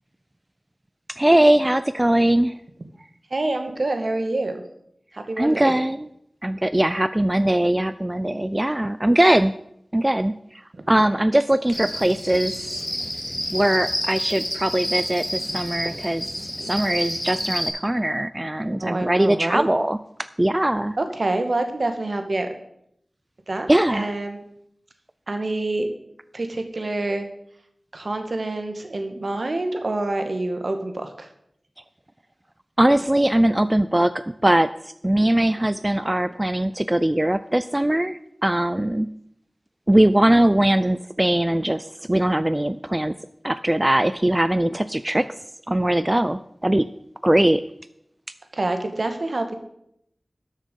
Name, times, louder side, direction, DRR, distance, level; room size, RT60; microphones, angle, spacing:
voice 1, 1.1-2.6 5.4-6.1 6.4-9.5 9.9-12.8 13.5-16.2 16.6-20.0 20.4-21.0 23.7-24.1 32.8-39.1 39.9-43.1 43.4-45.3 45.7-46.9 47.2-47.6, right 1 dB, 20° right, 13 dB, 0.4 m, -21 dB
voice 2, 3.3-4.6 5.1-5.7 10.7-10.8 18.8-19.7 21.0-22.5 23.5-24.4 25.3-25.9 26.3-27.2 27.9-31.3 48.5-49.6, right 2 dB, 60° right, 6 dB, 1.6 m, -26 dB
Cricket, 11.7-17.7, equal, 5° left, 2.9 m, -29 dB
13.0 x 6.6 x 5.4 m, 0.76 s
wide cardioid pair, 45°, 0 cm